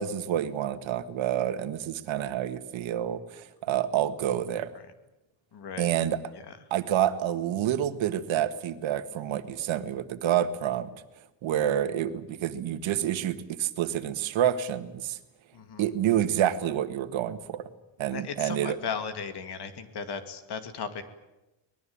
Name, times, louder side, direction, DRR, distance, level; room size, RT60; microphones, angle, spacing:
voice 1, 0.0-4.7 5.8-6.2 6.7-10.9 11.4-15.2 15.8-17.6 18.0-18.8, right 10 dB, 85° right, 10 dB, 1.8 m, -28 dB
voice 2, 5.5-5.9 6.5-6.6 15.5-15.8 18.1-21.0, left 6 dB, 60° left, 9 dB, 2.4 m, -36 dB
24.5 x 20.0 x 8.8 m, 0.98 s
cardioid pair, 165°, 45 cm